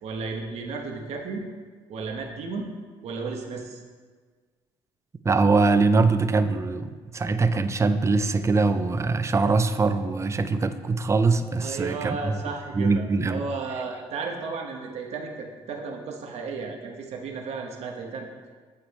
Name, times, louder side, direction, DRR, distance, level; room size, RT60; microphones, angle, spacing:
voice 1, 0.0-1.4 1.9-2.6 3.0-3.8 11.6-18.3, right 4 dB, 65° right, 2 dB, 0.9 m, -34 dB
voice 2, 5.2-12.4 12.7-13.5, right 3 dB, 25° right, 10 dB, 0.4 m, -22 dB
8.5 x 4.2 x 3.4 m, 1.5 s
supercardioid pair, 60°, 12 cm